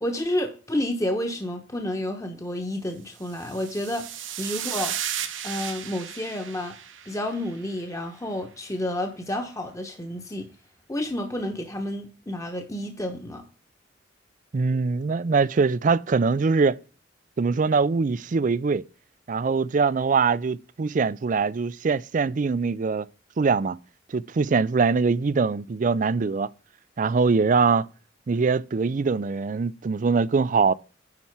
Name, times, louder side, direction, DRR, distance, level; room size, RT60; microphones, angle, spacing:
voice 1, 0.0-4.1 4.4-5.0 5.4-6.8 7.1-10.5 10.9-13.4, left 1 dB, 15° left, 1.0 m, -30 dB
sound 1, 3.2-7.7, right 10 dB, 85° right, 1.4 m, -34 dB
voice 2, 14.5-16.8 17.4-18.8 19.3-23.1 23.4-23.8 24.1-26.5 27.0-27.8 28.3-30.7, right 4 dB, 40° right, 0.4 m, -23 dB
10.0 x 4.3 x 5.9 m
head